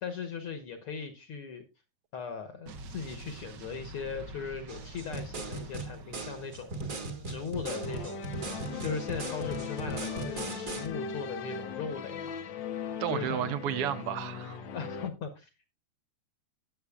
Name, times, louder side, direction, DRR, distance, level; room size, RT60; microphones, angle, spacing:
voice 1, 0.0-1.6 2.1-6.9 7.3-8.2 8.8-12.3 13.1-13.5 14.7-15.7, left 5 dB, 60° left, 1.5 m, -38 dB
Explosion, 2.7-7.4, right 2 dB, 65° right, 1.1 m, -47 dB
sound 1, 4.7-10.9, right 3 dB, 35° right, 1.5 m, -38 dB
sound 2, 7.7-15.1, left 6 dB, 80° left, 1.0 m, -39 dB
voice 2, 13.0-14.6, right 10 dB, 80° right, 1.3 m, -32 dB
17.0 x 7.4 x 2.3 m
omnidirectional pair, 3.4 m